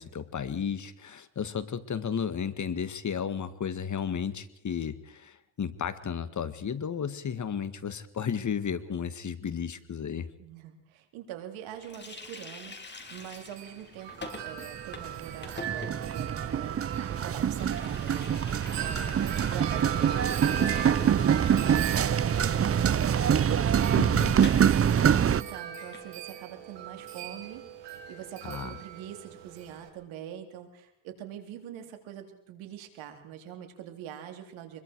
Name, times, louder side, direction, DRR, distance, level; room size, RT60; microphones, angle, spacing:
voice 1, 0.0-10.3 24.0-24.4 28.4-28.8, left 7 dB, 40° left, 13 dB, 1.9 m, -33 dB
voice 2, 10.4-34.8, right 10 dB, 80° right, 5 dB, 3.8 m, -44 dB
Water tap faucet, 11.8-24.7 24.9-25.1 25.4-26.1, left 3 dB, 20° left, 4.1 m, -46 dB
Wind chime, 13.0-29.9, right 10 dB, 65° right, 4.4 m, -39 dB
sound 1, 14.3-14.6 14.9-25.4, right 8 dB, 30° right, 0.7 m, -25 dB
24.5 x 22.0 x 4.8 m, 0.80 s
supercardioid pair, 85°, 47 cm